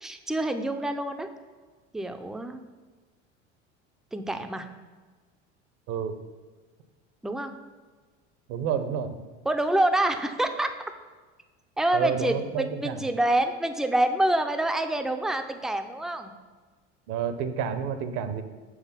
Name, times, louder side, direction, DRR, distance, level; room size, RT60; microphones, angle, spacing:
voice 1, 0.0-1.3 1.9-2.6 4.1-4.7 7.2-7.5 9.4-10.7 11.8-16.3, right 1 dB, ahead, 7 dB, 0.3 m, -26 dB
voice 2, 8.5-9.1 11.9-13.0 17.1-18.4, right 7 dB, 60° right, 10 dB, 0.7 m, -29 dB
6.0 x 3.8 x 5.7 m, 1.4 s
hypercardioid pair, 75°, 36 cm